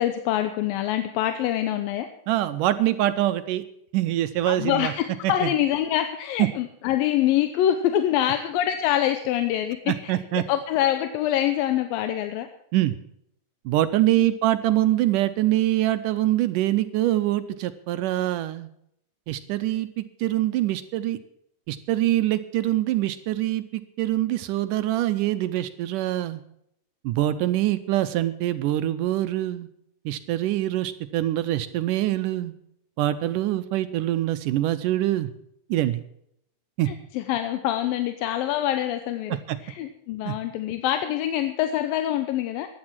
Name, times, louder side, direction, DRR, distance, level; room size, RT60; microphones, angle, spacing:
voice 1, 0.0-2.1 4.4-9.8 10.0-10.1 10.5-12.5 36.9-39.4 39.6-42.7, left 11 dB, 85° left, 8 dB, 2.6 m, -25 dB
voice 2, 2.3-3.6 3.9-4.9 5.2-5.5 6.4-6.5 9.9-10.4 12.7-13.0 13.7-18.7 19.3-21.2 21.7-26.4 27.0-29.7 30.1-32.5 33.0-35.3 35.7-36.0 36.8-36.9 39.3-39.6 40.3-40.4, right 14 dB, 75° right, 11 dB, 2.1 m, -24 dB
15.0 x 10.5 x 5.9 m, 0.73 s
omnidirectional pair, 4.0 m